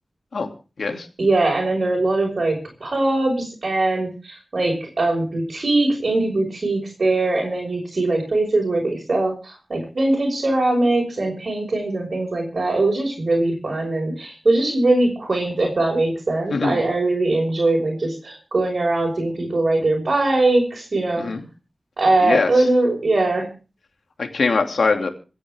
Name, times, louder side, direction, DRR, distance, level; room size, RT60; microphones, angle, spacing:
voice 1, 1.2-21.3 22.0-23.5, right 2 dB, 55° right, -1 dB, 5.4 m, -21 dB
voice 2, 16.5-16.8 21.2-21.5 22.2-22.7 24.2-25.1, left 4 dB, 80° left, 4 dB, 2.7 m, -22 dB
27.0 x 9.8 x 3.6 m, 0.35 s
wide cardioid pair, 95°, 0 cm